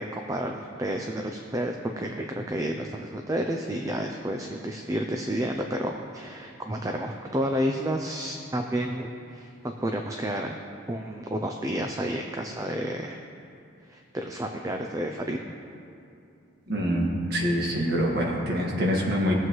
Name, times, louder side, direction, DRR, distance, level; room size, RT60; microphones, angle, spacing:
voice 1, 0.0-10.6 10.9-13.2 13.9-15.4, right 1 dB, 15° right, 3 dB, 0.4 m, -30 dB
voice 2, 16.7-19.3, equal, 50° right, -2 dB, 1.7 m, -25 dB
19.0 x 7.6 x 3.1 m, 2.5 s
head